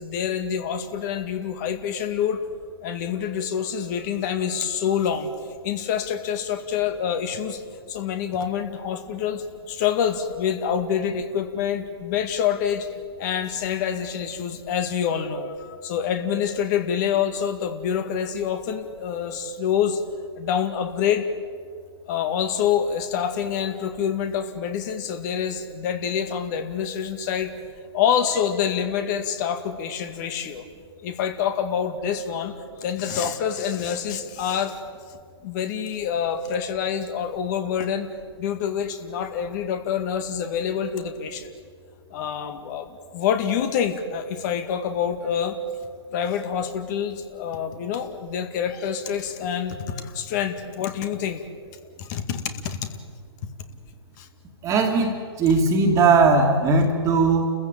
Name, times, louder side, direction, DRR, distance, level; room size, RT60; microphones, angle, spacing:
voice 1, 0.0-2.4 2.8-5.3 5.6-7.6 7.9-12.9 13.2-20.0 20.4-21.3 22.1-27.5 27.9-30.6 31.0-34.8 35.4-38.1 38.4-41.5 42.1-45.6 46.1-51.4 52.0-52.9 54.2-54.3, left 8 dB, 40° left, 8 dB, 2.1 m, -26 dB
voice 2, 54.6-57.5, right 3 dB, 20° right, 1 dB, 2.3 m, -19 dB
30.0 x 15.0 x 9.0 m, 2.1 s
hypercardioid pair, 130°, 14 cm